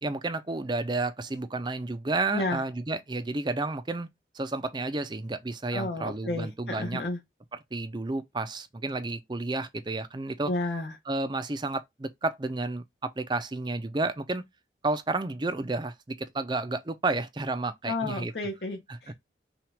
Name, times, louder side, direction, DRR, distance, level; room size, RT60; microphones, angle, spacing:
voice 1, 0.0-4.1 4.3-7.0 7.7-10.5 11.1-14.4 14.8-18.3 18.9-19.1, right 2 dB, 25° right, 0.5 m, -31 dB
voice 2, 5.7-7.2 10.5-10.9 17.8-19.1, left 2 dB, 65° left, 0.9 m, -32 dB
5.8 x 2.4 x 3.3 m
head